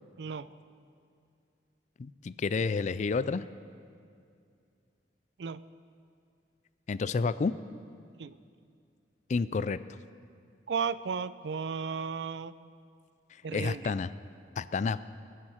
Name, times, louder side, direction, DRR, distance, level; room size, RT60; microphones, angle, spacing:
voice 1, 2.0-3.4 6.9-7.5 9.3-9.8 13.5-14.1 14.6-15.1, left 4 dB, 45° left, 16 dB, 0.4 m, -30 dB
voice 2, 10.7-12.5 13.4-13.9, right 6 dB, 75° right, 16 dB, 0.4 m, -34 dB
22.0 x 7.5 x 5.7 m, 2.4 s
head